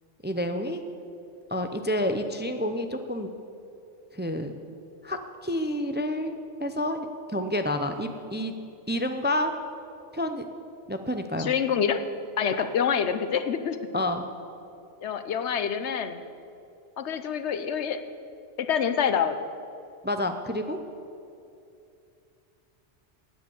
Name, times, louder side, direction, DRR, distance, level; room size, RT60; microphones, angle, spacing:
voice 1, 0.2-0.8 1.5-3.3 4.1-4.5 5.0-8.5 8.9-9.5 10.1-10.5 10.9-11.5 13.9-14.3 20.0-20.8, left 1 dB, 10° right, 7 dB, 0.5 m, -29 dB
voice 2, 11.4-12.0 12.4-13.8 15.0-16.2 17.0-18.0 18.6-19.4, left 7 dB, 75° left, 11 dB, 1.1 m, -26 dB
16.5 x 9.4 x 7.1 m, 2.7 s
omnidirectional pair, 1.2 m